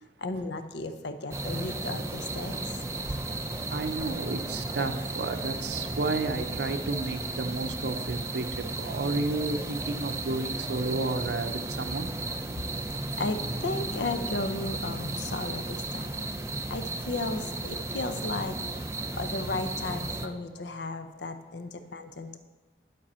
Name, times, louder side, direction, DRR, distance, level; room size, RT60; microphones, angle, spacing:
voice 1, 0.2-2.6 12.5-12.6 13.2-22.4, left 2 dB, 75° left, 9 dB, 0.6 m, -35 dB
sound 1, 1.3-20.3, right 2 dB, 15° right, 0.4 m, -34 dB
sound 2, 2.2-8.1, right 1 dB, 35° right, 0.8 m, -53 dB
voice 2, 3.1-12.1, right 3 dB, 70° right, 7 dB, 0.6 m, -32 dB
9.4 x 7.4 x 4.3 m, 1.2 s
head